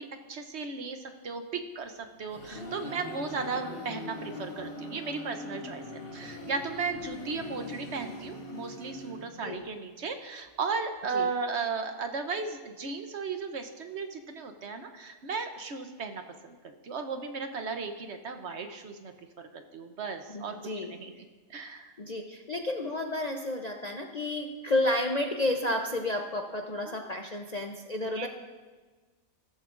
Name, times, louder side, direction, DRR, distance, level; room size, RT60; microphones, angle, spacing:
voice 1, 0.0-21.1 21.5-21.9 26.9-27.1 28.0-28.3, right 4 dB, 55° right, 6 dB, 1.0 m, -36 dB
sound 1, 1.9-9.7, left 1 dB, 75° left, 2.9 m, -41 dB
voice 2, 20.3-20.9 22.0-28.3, left 1 dB, 40° left, 2 dB, 0.6 m, -31 dB
16.0 x 14.0 x 2.5 m, 1.3 s
omnidirectional pair, 1.5 m